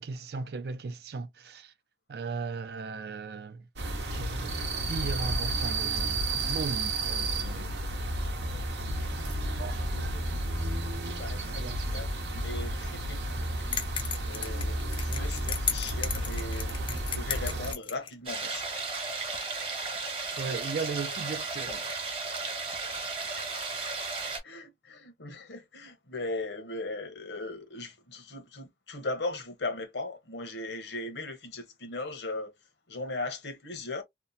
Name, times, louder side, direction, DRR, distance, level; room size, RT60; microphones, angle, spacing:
voice 1, 0.0-1.7 2.1-3.7 4.1-8.0 8.5-9.3 9.6-9.9 11.4-11.8 20.4-21.9, right 4 dB, 60° right, 0.4 m, -37 dB
sound 1, 3.8-17.7, right 1 dB, 80° right, 0.8 m, -32 dB
voice 2, 9.9-18.7 23.5-23.9 24.4-32.5 32.9-34.0, left 2 dB, 80° left, 0.8 m, -39 dB
sound 2, 13.7-18.1, left 7 dB, 30° left, 0.4 m, -35 dB
sound 3, 18.3-24.4, right 4 dB, 30° right, 1.0 m, -34 dB
2.9 x 2.1 x 2.6 m
head